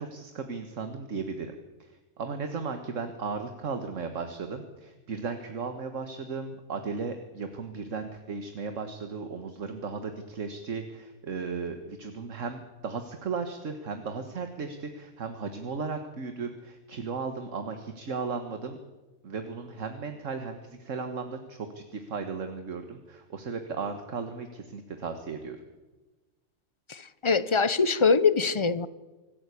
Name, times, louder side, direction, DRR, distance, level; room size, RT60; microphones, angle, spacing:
voice 1, 0.0-1.6 1.8-1.9 2.2-18.8 19.2-25.6, right 5 dB, 65° right, 7 dB, 1.8 m, -35 dB
voice 2, 26.9-28.9, left 5 dB, 30° left, 15 dB, 0.7 m, -23 dB
25.5 x 14.0 x 8.3 m, 1.2 s
omnidirectional pair, 1.4 m